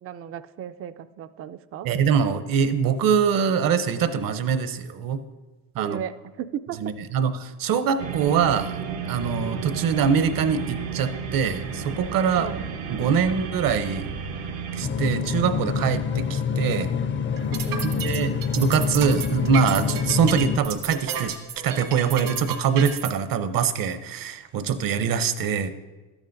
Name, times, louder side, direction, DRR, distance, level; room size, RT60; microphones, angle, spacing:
voice 1, 0.0-1.9 5.8-6.9 12.4-12.6 13.0-13.4 17.7-18.1, right 9 dB, 35° right, 12 dB, 0.4 m, -35 dB
voice 2, 1.8-5.2 5.8-6.0 6.8-8.8 9.1-12.5 12.9-14.1 14.7-16.9 17.8-21.3 21.6-25.7, right 7 dB, 55° right, 11 dB, 0.8 m, -23 dB
sound 1, 8.0-14.8, right 7 dB, 90° right, 1.1 m, -32 dB
sound 2, 14.8-20.6, left 6 dB, 30° left, 0.5 m, -26 dB
sound 3, 17.4-23.1, right 8 dB, 75° right, 1.5 m, -32 dB
12.5 x 8.4 x 2.6 m, 1.2 s
supercardioid pair, 75°, 41 cm